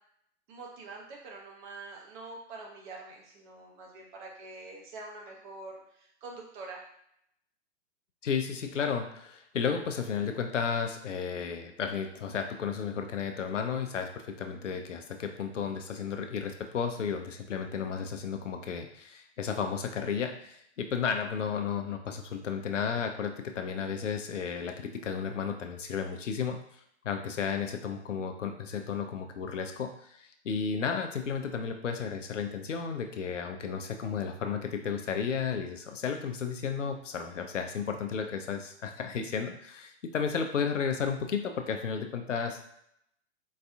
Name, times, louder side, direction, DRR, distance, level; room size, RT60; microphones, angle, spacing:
voice 1, 0.5-6.8, right 3 dB, 40° right, -1 dB, 1.0 m, -45 dB
voice 2, 8.2-26.6 27.0-42.7, left 6 dB, 90° left, 5 dB, 0.6 m, -33 dB
4.0 x 2.6 x 2.3 m, 0.73 s
hypercardioid pair, 120°, 36 cm